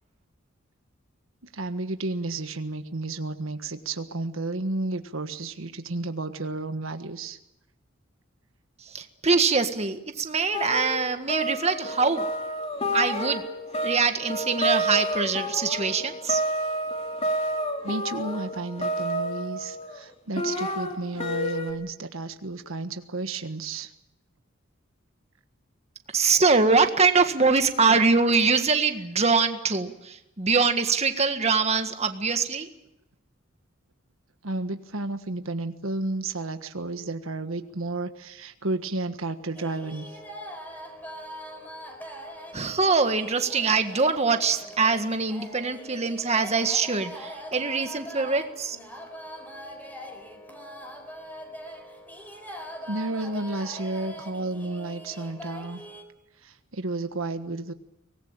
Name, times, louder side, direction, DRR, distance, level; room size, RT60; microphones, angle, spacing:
voice 1, 1.4-7.4 17.8-23.9 34.4-40.2 52.9-55.8 56.4-57.7, right 2 dB, 90° right, 8 dB, 1.5 m, -32 dB
voice 2, 8.8-12.3 12.9-13.5 13.8-16.4 26.1-32.7 42.5-48.8, right 4 dB, 35° right, 7 dB, 1.7 m, -23 dB
sound 1, 10.5-20.0 20.4-21.7, equal, 30° left, 3.2 m, -30 dB
sound 2, 39.5-56.0, equal, 10° left, 4.1 m, -42 dB
24.5 x 19.5 x 8.9 m, 0.86 s
head